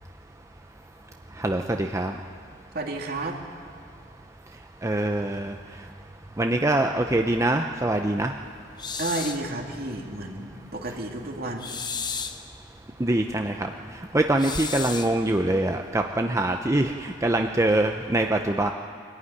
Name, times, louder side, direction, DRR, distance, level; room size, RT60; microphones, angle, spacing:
voice 1, 1.4-2.1 4.8-5.5 6.4-8.3 13.0-13.7 14.1-18.7, right 1 dB, 15° right, 4 dB, 0.7 m, -24 dB
voice 2, 2.7-3.4 9.0-11.7, right 2 dB, 55° right, 1 dB, 2.5 m, -31 dB
sound 1, 8.8-9.5 11.6-12.5 14.4-15.2, left 6 dB, 25° left, 0.9 m, -33 dB
23.0 x 14.5 x 9.9 m, 2.2 s
head